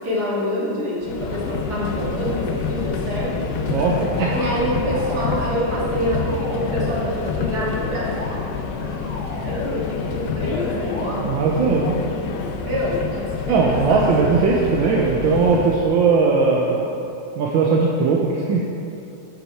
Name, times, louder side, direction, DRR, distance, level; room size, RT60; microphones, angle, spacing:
voice 1, 0.0-3.3 4.3-8.3 9.4-11.3 12.6-14.5, equal, 50° right, -6 dB, 2.6 m, -26 dB
Subway metro underground, 1.0-15.8, left 5 dB, 70° left, 1.2 m, -27 dB
sound 1, 3.4-4.5 4.8-5.8 6.0-7.1 7.5-8.4 8.8-9.8 10.4-11.1, left 1 dB, 25° left, 1.8 m, -35 dB
voice 2, 3.4-4.3 11.2-12.0 13.5-16.9 17.4-18.6, right 4 dB, 80° right, -2 dB, 1.6 m, -19 dB
11.0 x 7.1 x 4.5 m, 2.7 s
omnidirectional pair, 2.2 m